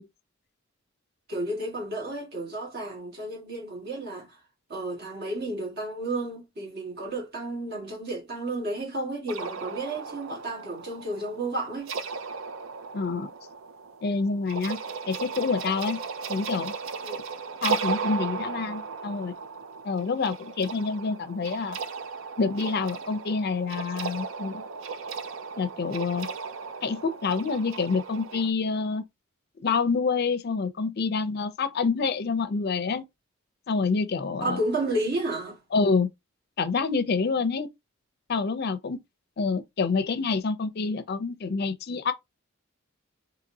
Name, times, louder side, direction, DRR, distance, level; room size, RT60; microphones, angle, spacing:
voice 1, 1.3-4.4 4.7-11.9 17.0-17.2 34.4-35.6, right 2 dB, 50° right, 1.6 m, -32 dB
sound 1, 9.3-28.5, right 5 dB, 75° right, 0.5 m, -36 dB
voice 2, 12.9-13.3 14.0-14.8 15.1-16.0 16.3-16.7 17.6-19.3 19.8-21.8 22.4-24.6 25.6-26.3 26.8-29.0 29.6-33.0 33.7-34.6 35.7-36.1 36.6-37.7 38.3-39.0 39.4-42.1, left 4 dB, 50° left, 0.5 m, -27 dB
4.0 x 2.8 x 2.6 m
head